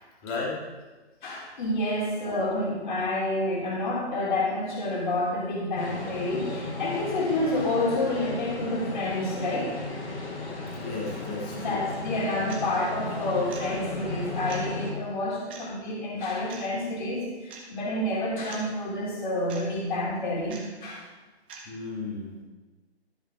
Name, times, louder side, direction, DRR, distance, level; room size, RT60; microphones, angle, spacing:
voice 1, 0.2-0.6 10.8-11.9 21.7-22.4, left 3 dB, 20° left, -2 dB, 1.9 m, -34 dB
voice 2, 1.2-9.8 11.5-21.0, left 1 dB, 45° left, -4 dB, 3.7 m, -29 dB
sound 1, 5.8-14.9, left 3 dB, 75° left, 4.4 m, -35 dB
sound 2, 12.5-12.7 13.5-13.7 14.5-14.7 15.5-15.6 16.5-16.7 17.5-17.7 18.5-18.7 19.5-19.7 20.5-20.6 21.5-21.7, right 5 dB, 10° right, 0.6 m, -43 dB
13.0 x 7.1 x 4.9 m, 1.2 s
hypercardioid pair, 160°, 33 cm